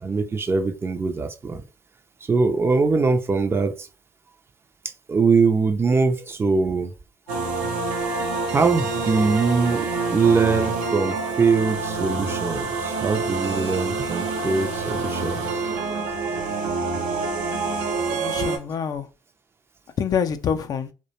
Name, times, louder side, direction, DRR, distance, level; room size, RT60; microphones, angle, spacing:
voice 1, 0.0-1.6 2.3-3.9 4.8-6.9 8.5-15.6, right 4 dB, 25° right, 0.4 m, -22 dB
sound 1, 7.3-18.6, right 3 dB, 80° right, 0.6 m, -27 dB
voice 2, 17.8-19.1 20.0-20.9, left 7 dB, 45° left, 0.4 m, -26 dB
2.4 x 2.1 x 2.8 m
hypercardioid pair, 65°, 9 cm